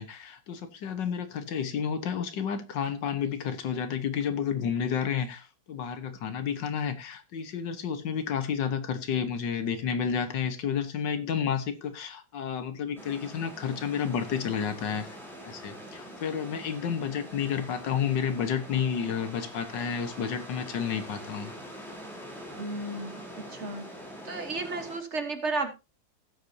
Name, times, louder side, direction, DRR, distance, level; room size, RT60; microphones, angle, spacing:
voice 1, 0.0-15.1 15.4-21.5, left 7 dB, 75° left, 1.8 m, -31 dB
sound 1, 13.0-25.0, equal, ahead, 3.3 m, -44 dB
voice 2, 22.5-23.9 24.2-25.7, right 3 dB, 40° right, 1.5 m, -33 dB
16.0 x 8.1 x 2.7 m
omnidirectional pair, 1.9 m